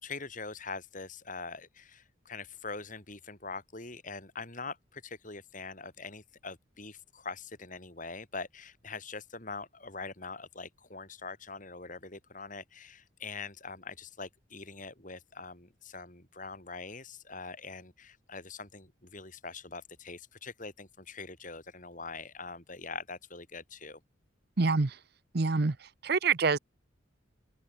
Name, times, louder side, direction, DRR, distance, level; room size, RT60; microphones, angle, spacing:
voice 1, 0.0-24.0, left 4 dB, 40° left, 4.5 m, -43 dB
voice 2, 24.6-24.9 25.3-25.7 26.0-26.6, right 4 dB, 50° right, 0.7 m, -26 dB
open air
head